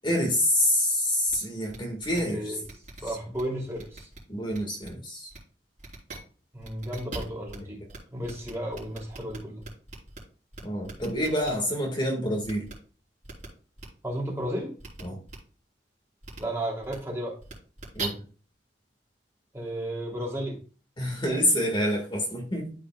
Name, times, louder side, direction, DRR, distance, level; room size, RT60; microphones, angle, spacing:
voice 1, 0.0-2.6 3.0-3.2 4.3-5.3 10.6-12.7 15.0-15.2 17.9-18.2 21.0-22.7, left 1 dB, 25° left, -1 dB, 1.7 m, -27 dB
sound 1, 1.3-1.4 1.7-1.8 2.0-2.2 2.6-3.4 3.7-4.2 4.5-4.9 5.3-5.4 5.8-6.2 6.6-7.6 7.9-8.0 8.2-10.2 10.5-11.5 12.4-12.7 13.2-13.5 13.8-13.9 14.8-15.0 15.3-15.4 16.2-16.4 16.8-16.9 17.4-18.0, right 4 dB, 40° right, 3.8 m, -40 dB
voice 2, 2.1-2.6 3.0-4.1 6.5-7.8 8.1-9.6 14.0-14.7 16.4-17.4 19.5-20.6, right 1 dB, 15° right, -2 dB, 2.8 m, -33 dB
13.0 x 5.0 x 2.3 m, 0.38 s
head